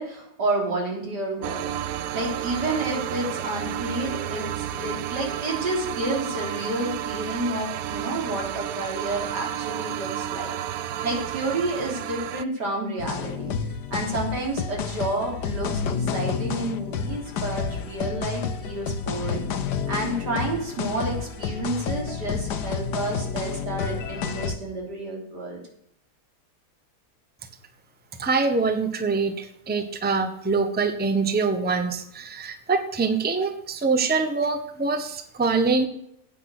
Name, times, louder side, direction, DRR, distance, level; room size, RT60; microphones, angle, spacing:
voice 1, 0.0-1.7 2.1-13.5 13.9-19.5 19.9-25.6, right 2 dB, 85° right, -1 dB, 3.9 m, -30 dB
sound 1, 1.4-12.4, right 11 dB, 70° right, 0.9 m, -31 dB
sound 2, 13.0-24.6, left 6 dB, 85° left, 1.5 m, -30 dB
voice 2, 28.2-35.9, right 4 dB, 10° right, 8 dB, 0.8 m, -24 dB
10.0 x 8.7 x 6.4 m, 0.76 s
omnidirectional pair, 1.8 m